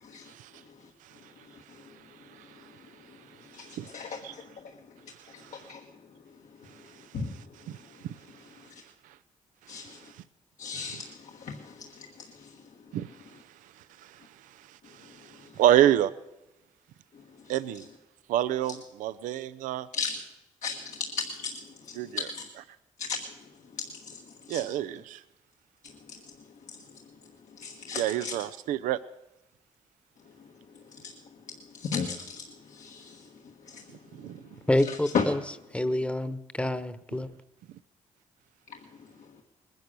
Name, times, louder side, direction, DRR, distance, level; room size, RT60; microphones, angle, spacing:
voice 1, 0.3-0.6 1.0-1.3 1.7-2.8 3.3-4.4 5.1-5.7 6.6-8.7 9.0-9.2 9.7-10.2 10.7-11.0 12.9-16.1 17.5-17.9 18.3-19.9 22.0-22.3 24.5-25.2 27.9-29.0 34.1-34.4, right 12 dB, 90° right, 0.5 m, -30 dB
voice 2, 3.9-4.4 5.5-5.8 7.1-7.3 9.7-10.0 10.6-12.5 19.9-20.1 20.6-21.5 22.2-22.4 23.0-23.2 23.8-24.2 24.5-24.6 26.1-26.2 27.6-28.3 31.0-31.1 31.7-33.2 33.7-33.8 35.1-35.2, left 5 dB, 70° left, 1.3 m, -34 dB
voice 3, 34.7-35.4 35.7-37.3, left 1 dB, 10° left, 1.0 m, -27 dB
19.5 x 10.5 x 6.7 m
cardioid pair, 65°, 13 cm